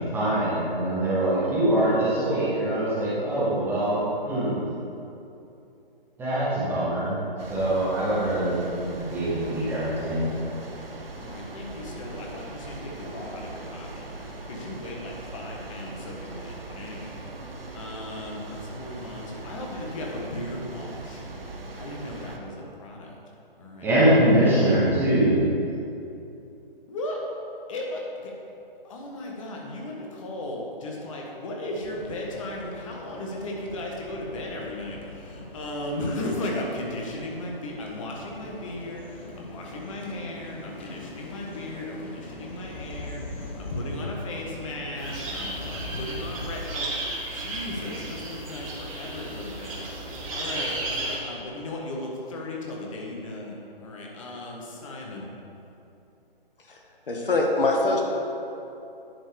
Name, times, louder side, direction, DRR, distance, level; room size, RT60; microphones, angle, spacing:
voice 1, 0.0-4.6 6.2-7.2 7.5-10.3 23.8-25.4, right 1 dB, 5° right, -10 dB, 1.4 m, -23 dB
sound 1, 7.4-22.4, right 2 dB, 80° right, 1.0 m, -40 dB
voice 2, 11.1-21.2 21.7-23.2 23.6-23.9 24.4-24.9 26.9-27.2 27.7-28.3 28.8-55.3, left 1 dB, 35° left, -1 dB, 1.4 m, -36 dB
sound 2, 31.8-46.4, left 2 dB, 10° left, 0.4 m, -42 dB
sound 3, 45.0-51.2, right 1 dB, 35° right, 1.6 m, -34 dB
voice 3, 57.1-58.0, left 2 dB, 65° left, 0 dB, 1.4 m, -23 dB
10.5 x 4.4 x 4.7 m, 2.8 s
figure-of-eight pair, 140°, 29 cm